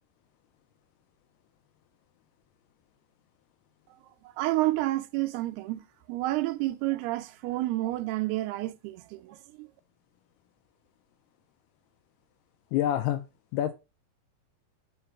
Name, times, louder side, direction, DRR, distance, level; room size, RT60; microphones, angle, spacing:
voice 1, 4.4-9.7, right 18 dB, 85° right, 2.6 m, -30 dB
voice 2, 12.7-13.3 13.5-13.7, left 11 dB, 85° left, 2.6 m, -26 dB
5.6 x 4.9 x 5.7 m
omnidirectional pair, 4.6 m